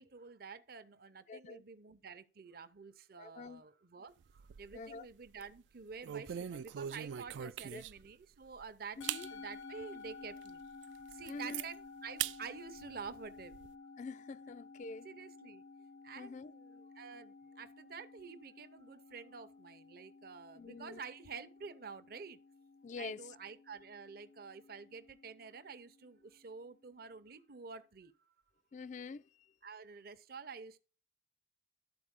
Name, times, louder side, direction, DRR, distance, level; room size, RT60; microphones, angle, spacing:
voice 1, 0.0-9.0 9.3-10.6 11.1-13.5 15.0-15.6 16.0-22.4 23.0-28.1 29.6-30.8, right 5 dB, 55° right, 0.7 m, -49 dB
voice 2, 1.3-1.6 3.2-3.6 4.7-5.1 7.4-7.8 9.0-9.3 11.3-11.6 14.0-15.1 16.2-16.5 20.6-21.0 22.8-23.3 28.7-29.2, left 4 dB, 40° left, 0.3 m, -46 dB
sound 1, 4.2-4.9 5.3-5.5 6.0-8.1 8.6-8.7 9.0-9.3 9.8-9.9 10.4-10.5 10.8-11.7 12.2-12.4 12.8-13.7, right 10 dB, 85° right, 0.3 m, -41 dB
Musical instrument, 9.0-27.5, left 4 dB, 85° left, 0.6 m, -54 dB
12.0 x 4.4 x 3.6 m
head